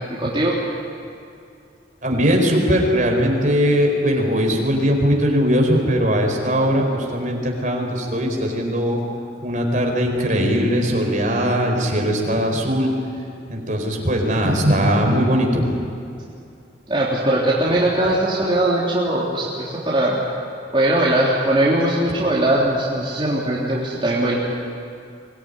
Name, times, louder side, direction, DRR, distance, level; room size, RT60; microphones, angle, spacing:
voice 1, 0.2-0.5 16.9-20.2 20.7-24.3, right 1 dB, 30° right, -7 dB, 3.4 m, -20 dB
voice 2, 2.0-9.0 9.4-12.9 13.5-15.8, equal, 45° right, 1 dB, 4.4 m, -20 dB
24.5 x 19.5 x 9.9 m, 2.4 s
head